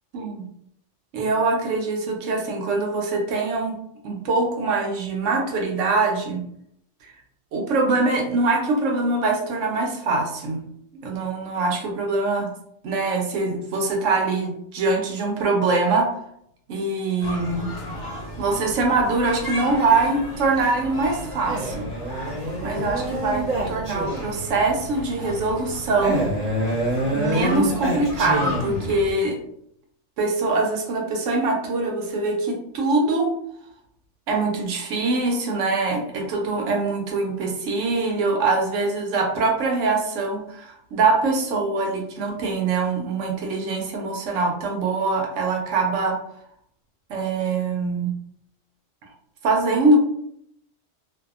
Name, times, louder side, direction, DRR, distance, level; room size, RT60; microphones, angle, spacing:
voice 1, 0.1-0.4 1.1-3.8 4.0-6.4 7.0-7.1 7.5-10.6 11.0-12.5 12.8-16.1 16.7-17.7 18.4-21.9 22.6-26.2 27.1-29.4 30.2-33.3 34.3-46.2 47.1-48.1 49.4-50.0, right 3 dB, 80° right, 1 dB, 0.9 m, -23 dB
sound 1, 17.2-29.1, left 1 dB, 55° left, 1.0 m, -34 dB
Male speech man speaking, 21.4-24.5 26.0-29.0, right 1 dB, 35° right, 0.8 m, -26 dB
2.7 x 2.2 x 2.3 m, 0.72 s
omnidirectional pair, 1.3 m